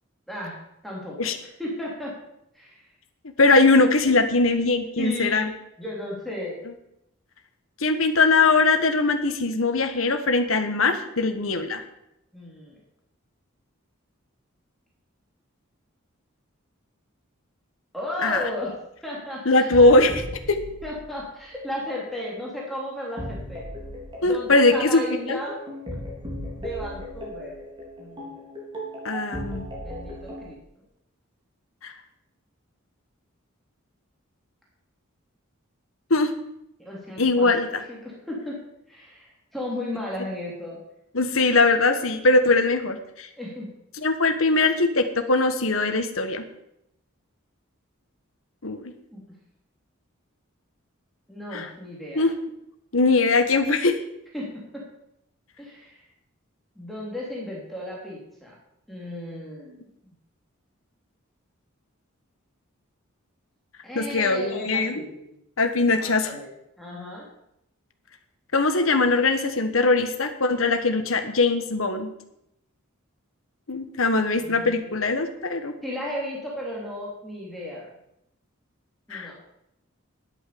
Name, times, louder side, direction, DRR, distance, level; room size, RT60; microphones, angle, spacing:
voice 1, 0.8-2.1 2.5-2.8 5.0-5.5 5.8-6.6 12.3-12.8 17.9-18.7 19.0-19.9 20.8-23.7 24.2-25.6 26.6-27.5 28.0-28.3 29.8-30.8 36.8-37.5 37.9-40.8 43.4-43.7 49.1-49.2 51.3-52.3 54.3-54.8 55.6-56.0 56.7-58.5 58.9-59.9 63.8-65.4 65.9-66.5 66.8-67.2 74.3-74.8 75.8-77.9 79.1-79.3, left 1 dB, ahead, -4 dB, 3.1 m, -34 dB
voice 2, 3.4-5.5 7.8-11.8 18.2-18.4 19.4-20.1 20.5-20.6 24.2-25.4 29.0-29.7 31.8-31.9 36.1-36.3 37.2-37.8 41.1-43.3 44.0-46.4 48.6-48.9 51.5-51.7 52.1-52.3 52.9-53.9 63.9-65.0 65.6-66.3 68.5-72.1 73.7-75.7 79.1-79.3, left 3 dB, 70° left, 7 dB, 1.3 m, -21 dB
sound 1, 19.7-21.5 23.2-30.5, equal, 25° right, 3.8 m, -37 dB
10.5 x 8.7 x 6.9 m, 0.81 s
head